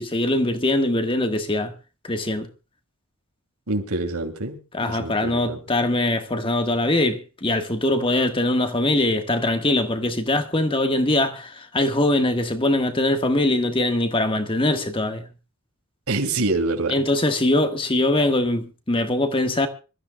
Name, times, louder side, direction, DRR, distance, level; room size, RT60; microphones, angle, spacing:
voice 1, 0.0-1.7 2.0-2.5 4.7-15.3 16.9-19.7, left 1 dB, 25° left, 1.4 m, -22 dB
voice 2, 3.7-4.6 4.9-5.6 16.1-16.9, right 2 dB, 85° right, 2.7 m, -25 dB
25.5 x 13.5 x 2.3 m
head